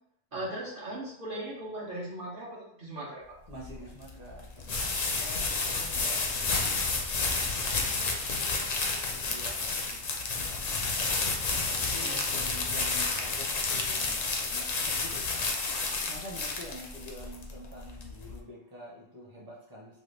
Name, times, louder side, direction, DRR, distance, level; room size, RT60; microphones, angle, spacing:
voice 1, 0.3-3.2 12.0-12.3, right 1 dB, 50° right, -6 dB, 1.0 m, -38 dB
sound 1, 3.5-18.4, left 3 dB, 55° left, 0.4 m, -31 dB
voice 2, 3.5-6.8 7.1-10.0 10.9-15.2 16.1-20.0, equal, 20° right, -5 dB, 0.7 m, -47 dB
3.1 x 2.3 x 3.2 m, 0.72 s
omnidirectional pair, 1.2 m